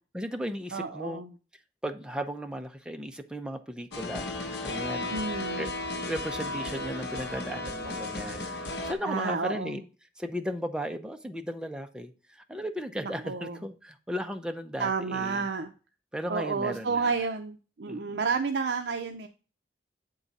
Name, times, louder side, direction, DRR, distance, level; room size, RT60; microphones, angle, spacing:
voice 1, 0.1-1.2 1.8-5.2 5.6-5.7 6.0-9.8 10.2-15.5 16.1-17.1 17.8-18.2, equal, 5° right, 7 dB, 0.5 m, -36 dB
voice 2, 0.7-1.3 5.1-5.7 9.0-9.8 13.0-13.6 14.8-15.7 16.3-19.3, right 4 dB, 70° right, 6 dB, 0.5 m, -30 dB
sound 1, 3.9-8.9, left 2 dB, 65° left, 1.0 m, -34 dB
8.0 x 3.8 x 4.0 m, 0.35 s
head